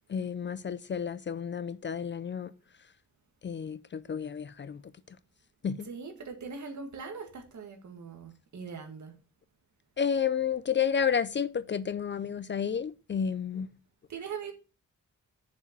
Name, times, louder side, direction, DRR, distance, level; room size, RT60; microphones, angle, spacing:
voice 1, 0.1-2.5 3.4-4.8 5.6-5.9 10.0-13.7, left 7 dB, 40° left, 0.4 m, -31 dB
voice 2, 5.8-9.1 14.1-14.5, right 5 dB, 70° right, 1.9 m, -41 dB
6.9 x 5.1 x 6.6 m
wide cardioid pair, 165°, 31 cm